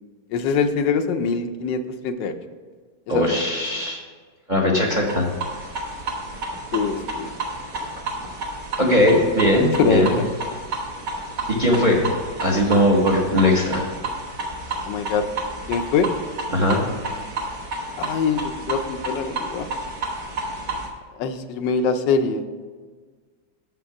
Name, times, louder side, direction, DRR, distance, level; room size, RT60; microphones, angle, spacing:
voice 1, 0.3-2.3 3.1-3.3 6.7-7.3 9.2-9.3 9.6-10.3 14.8-15.2 15.7-16.1 18.0-19.7 21.2-22.4, left 5 dB, 85° left, 8 dB, 1.3 m, -23 dB
voice 2, 3.1-4.0 4.5-5.3 8.8-10.1 11.5-12.1 12.4-13.9 16.5-16.8, left 1 dB, 35° right, -1 dB, 0.8 m, -19 dB
sound 1, 5.0-20.9, right 2 dB, 70° right, 1.8 m, -31 dB
6.7 x 5.3 x 5.8 m, 1.5 s
omnidirectional pair, 1.9 m